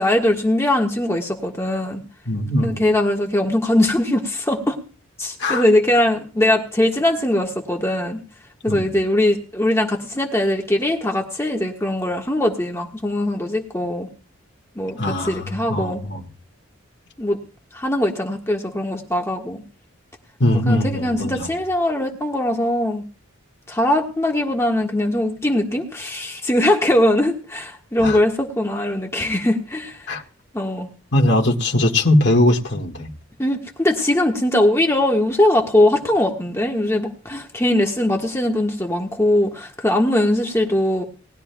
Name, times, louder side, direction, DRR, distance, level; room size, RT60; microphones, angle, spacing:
voice 1, 0.0-2.0 2.6-4.8 5.2-8.2 8.6-14.1 14.7-16.0 17.2-17.4 17.7-19.6 20.6-23.0 23.7-30.0 30.5-30.9 33.4-41.0, left 1 dB, 15° left, 1.4 m, -21 dB
voice 2, 2.3-2.8 5.4-5.6 8.7-8.8 15.0-16.2 20.4-21.5 28.0-28.2 30.1-30.2 31.1-33.1, left 1 dB, 55° left, 1.8 m, -20 dB
19.5 x 12.0 x 2.3 m
head